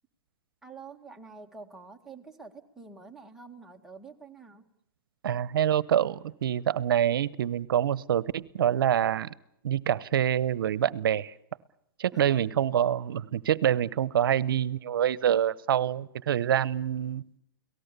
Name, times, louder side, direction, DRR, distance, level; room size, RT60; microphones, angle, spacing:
voice 1, 0.6-4.7 12.1-12.3, right 4 dB, 5° right, 0 dB, 1.8 m, -47 dB
voice 2, 5.2-9.3 9.6-11.3 12.0-17.2, right 10 dB, 75° right, 21 dB, 0.9 m, -26 dB
29.5 x 18.0 x 6.8 m, 0.74 s
hypercardioid pair, 140°, 12 cm